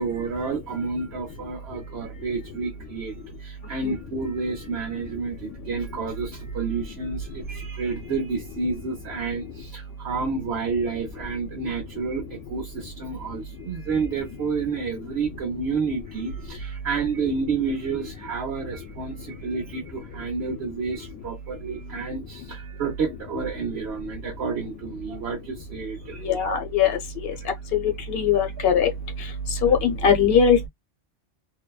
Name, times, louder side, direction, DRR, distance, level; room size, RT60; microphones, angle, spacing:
voice 1, 0.0-26.4 27.4-27.5, right 4 dB, 60° right, 1.0 m, -30 dB
voice 2, 26.2-27.0 27.7-27.8 28.1-28.9 29.6-30.7, left 7 dB, 55° left, 0.9 m, -20 dB
2.7 x 2.1 x 2.3 m
omnidirectional pair, 1.3 m